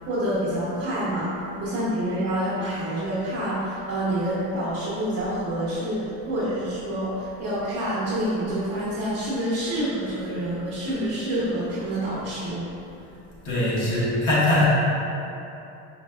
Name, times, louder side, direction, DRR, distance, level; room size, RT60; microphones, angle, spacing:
voice 1, 0.1-1.3 1.6-12.6, right 1 dB, 35° right, -10 dB, 1.1 m, -27 dB
voice 2, 13.4-14.7, left 1 dB, 45° left, -7 dB, 1.4 m, -21 dB
5.1 x 3.3 x 2.4 m, 2.9 s
supercardioid pair, 125°, 41 cm